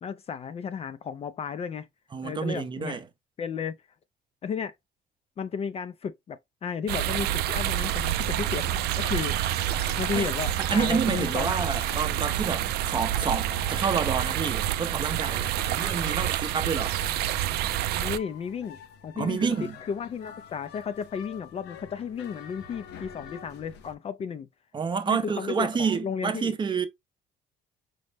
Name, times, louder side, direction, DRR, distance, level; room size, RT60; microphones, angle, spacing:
voice 1, 0.0-1.9 2.2-3.0 3.4-3.7 4.4-4.7 5.4-9.4 10.0-11.6 18.0-18.8 19.0-19.5 19.9-24.5 25.1-26.6, left 7 dB, 35° left, 0.4 m, -33 dB
voice 2, 2.1-3.0 10.2-10.3 10.6-16.9 19.2-19.8 24.7-26.9, right 5 dB, 30° right, 0.6 m, -29 dB
sound 1, 6.9-18.2, right 12 dB, 75° right, 0.4 m, -28 dB
sound 2, 8.2-23.9, left 8 dB, 80° left, 0.7 m, -46 dB
5.2 x 2.0 x 3.2 m
cardioid pair, 110°, 17 cm